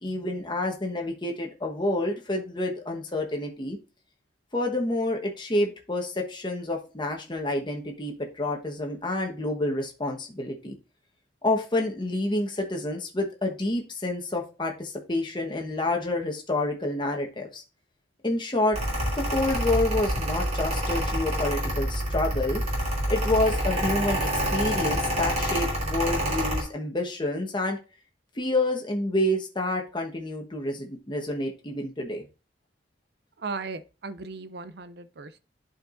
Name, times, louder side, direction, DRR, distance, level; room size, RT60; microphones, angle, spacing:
voice 1, 0.0-3.8 4.5-10.7 11.4-17.6 18.2-18.8 19.3-22.6 23.1-27.8 28.4-32.2, left 1 dB, 25° left, 1.2 m, -28 dB
Mechanical fan, 18.7-26.6, equal, 35° right, 2.6 m, -27 dB
voice 2, 33.4-35.4, right 4 dB, 60° right, 0.5 m, -37 dB
11.5 x 4.6 x 2.6 m
head